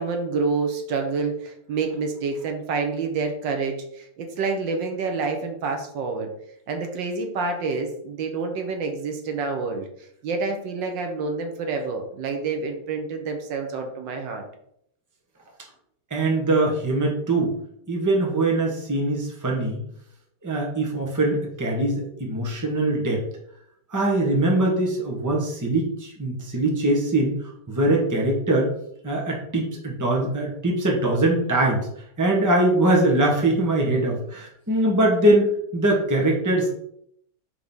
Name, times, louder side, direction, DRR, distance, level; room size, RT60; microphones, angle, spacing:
voice 1, 0.0-6.3 6.7-9.9 10.2-14.4, right 4 dB, 80° right, 4 dB, 1.6 m, -28 dB
voice 2, 16.1-17.5 17.9-19.8 20.4-23.2 23.9-28.7 29.0-31.9 32.2-36.7, right 1 dB, 10° right, -1 dB, 1.1 m, -22 dB
4.7 x 3.9 x 5.5 m, 0.71 s
omnidirectional pair, 2.0 m